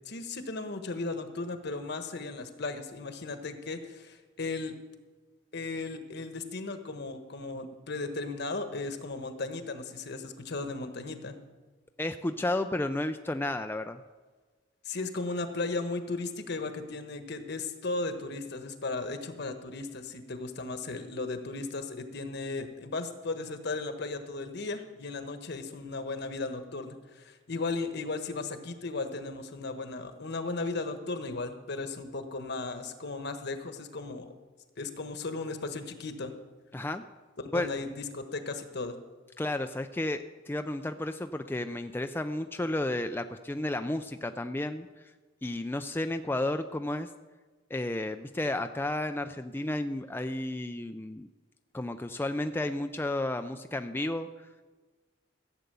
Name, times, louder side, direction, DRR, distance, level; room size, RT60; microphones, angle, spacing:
voice 1, 0.1-4.7 5.5-11.4 14.8-34.3 34.8-36.3 37.4-38.9, left 3 dB, 60° left, 8 dB, 1.2 m, -36 dB
voice 2, 12.0-14.0 36.7-37.0 37.5-37.7 39.4-45.1 45.4-47.1 47.7-51.3 51.7-54.5, left 1 dB, 10° left, 7 dB, 0.4 m, -32 dB
15.0 x 8.2 x 6.8 m, 1.3 s
head